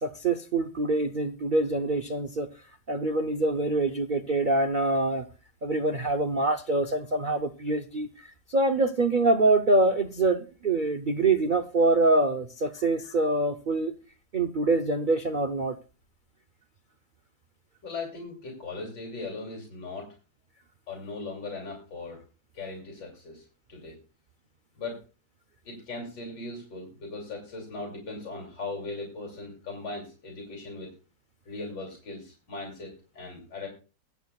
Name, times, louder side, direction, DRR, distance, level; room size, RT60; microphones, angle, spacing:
voice 1, 0.0-2.5 2.9-5.2 5.6-8.1 8.5-13.9 14.3-15.8, right 2 dB, 80° right, 7 dB, 0.4 m, -25 dB
voice 2, 17.8-20.1 20.9-22.2 22.5-24.0 24.8-25.0 25.6-30.9 31.5-33.7, left 3 dB, 80° left, 0 dB, 3.5 m, -38 dB
22.5 x 8.1 x 2.3 m, 0.34 s
omnidirectional pair, 2.0 m